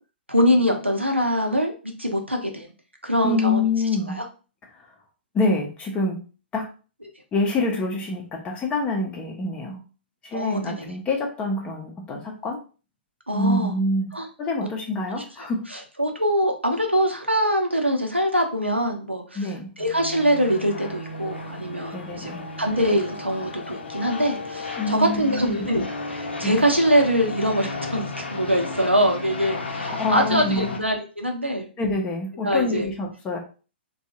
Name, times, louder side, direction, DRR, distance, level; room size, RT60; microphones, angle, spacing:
voice 1, 0.3-1.7 2.0-2.7 3.0-3.7 4.2-4.3 10.3-10.9 13.3-13.7 14.1-14.2 15.1-15.2 15.7-19.5 19.8-22.3 22.6-31.7 32.4-32.9, equal, 90° right, 3 dB, 0.8 m, -23 dB
voice 2, 3.2-4.2 5.3-6.2 6.5-6.7 7.3-9.8 10.2-12.6 13.3-14.1 14.4-15.6 19.3-19.7 21.9-22.4 24.8-25.6 26.4-26.6 29.9-30.7 31.8-33.4, left 2 dB, 20° left, 0 dB, 0.6 m, -26 dB
sound 1, 19.8-30.8, left 3 dB, 75° left, 0.7 m, -34 dB
3.4 x 2.3 x 2.8 m, 0.35 s
figure-of-eight pair, 115°, 6 cm